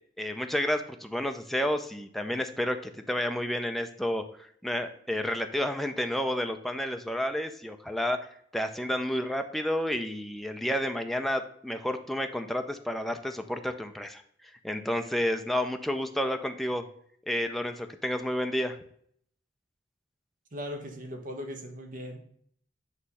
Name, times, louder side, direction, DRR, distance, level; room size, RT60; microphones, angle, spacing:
voice 1, 0.2-14.2 14.6-16.9 17.3-18.8, equal, ahead, 6 dB, 0.5 m, -30 dB
voice 2, 20.5-22.2, equal, 45° right, 4 dB, 1.2 m, -38 dB
8.2 x 3.2 x 5.5 m, 0.63 s
head